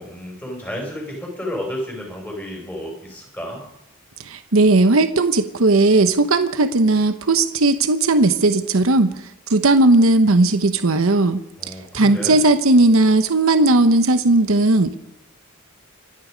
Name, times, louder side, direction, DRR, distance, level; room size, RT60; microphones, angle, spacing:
voice 1, 0.0-3.6 11.6-12.4, equal, 10° left, -1 dB, 6.2 m, -31 dB
voice 2, 4.2-9.1 9.5-11.4 11.9-15.0, right 2 dB, 80° right, 9 dB, 1.0 m, -16 dB
25.5 x 10.5 x 5.2 m, 0.81 s
head